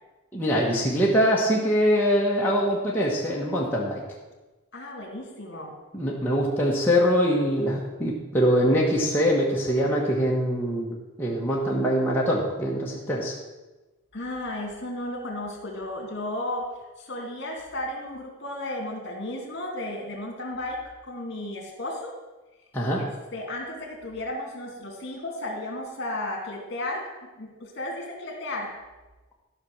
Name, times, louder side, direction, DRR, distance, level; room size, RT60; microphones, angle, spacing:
voice 1, 0.3-4.0 5.9-13.3 22.7-23.0, equal, 10° left, -5 dB, 1.4 m, -23 dB
voice 2, 4.7-5.8 14.1-22.2 23.0-23.1 23.3-28.8, left 1 dB, 50° left, 1 dB, 2.7 m, -34 dB
13.0 x 5.9 x 6.4 m, 1.1 s
head